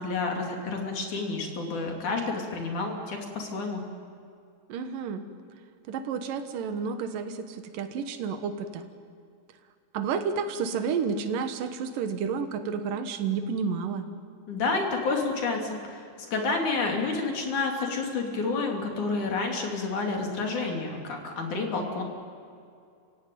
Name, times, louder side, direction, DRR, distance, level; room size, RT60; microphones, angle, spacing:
voice 1, 0.0-3.8 14.5-22.0, left 3 dB, 65° left, 1 dB, 4.4 m, -29 dB
voice 2, 4.7-5.2 5.9-8.9 9.9-14.0, right 6 dB, 80° right, 7 dB, 3.0 m, -30 dB
30.0 x 17.0 x 9.3 m, 2.4 s
omnidirectional pair, 3.9 m